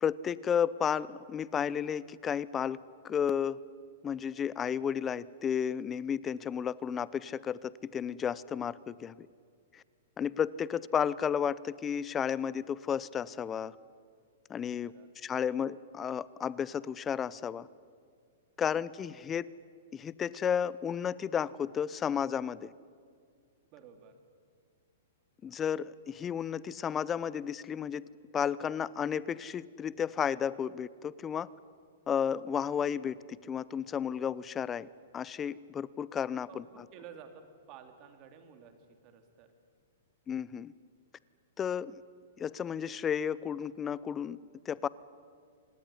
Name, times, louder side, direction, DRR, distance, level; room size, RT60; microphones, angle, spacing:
voice 1, 0.0-2.8 3.0-3.6 4.0-9.3 9.7-9.8 10.2-13.8 14.5-14.9 15.2-17.7 18.6-19.5 19.9-22.7 25.4-28.1 28.3-31.5 32.1-33.1 33.5-34.9 35.1-36.6 40.3-40.7 41.6-42.0 42.4-44.4 44.7-44.9, left 8 dB, 20° left, 20 dB, 0.7 m, -32 dB
voice 2, 14.5-15.1 18.6-18.8 23.7-24.2 36.5-38.8 39.0-39.5, right 7 dB, 40° right, 7 dB, 3.2 m, -53 dB
26.5 x 19.5 x 9.8 m, 2.1 s
hypercardioid pair, 130°, 0 cm